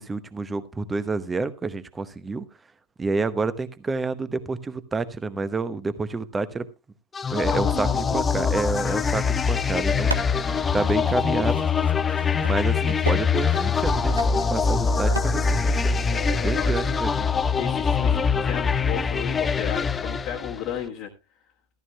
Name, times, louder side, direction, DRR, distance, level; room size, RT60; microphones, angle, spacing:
voice 1, 0.0-2.5 3.0-6.7 7.3-10.1 10.7-11.6 12.4-16.1 16.4-17.3, right 3 dB, 15° right, 13 dB, 0.9 m, -29 dB
sound 1, 7.1-20.8, left 5 dB, 15° left, 0.5 m, -23 dB
voice 2, 7.5-8.5 8.8-9.0 16.1-16.9 17.5-21.1, left 9 dB, 40° left, -1 dB, 1.5 m, -34 dB
sound 2, 9.9-15.2, right 3 dB, 80° right, 0.9 m, -38 dB
14.0 x 13.5 x 2.3 m, 0.27 s
figure-of-eight pair, 90°, 0 cm